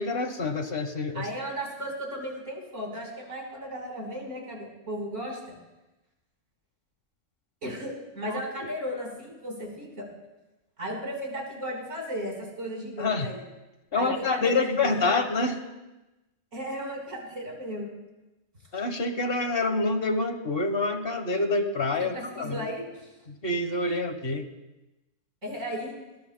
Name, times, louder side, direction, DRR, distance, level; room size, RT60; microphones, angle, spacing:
voice 1, 0.0-1.3 8.3-8.7 13.0-13.3 13.9-15.6 18.7-22.6 23.3-24.5, left 3 dB, 50° left, 6 dB, 1.4 m, -27 dB
voice 2, 1.1-5.5 7.6-10.0 10.8-13.4 13.9-15.1 16.5-17.9 22.0-23.1 25.4-25.9, equal, 75° right, -1 dB, 4.8 m, -35 dB
21.5 x 21.0 x 2.2 m, 1.0 s
omnidirectional pair, 1.3 m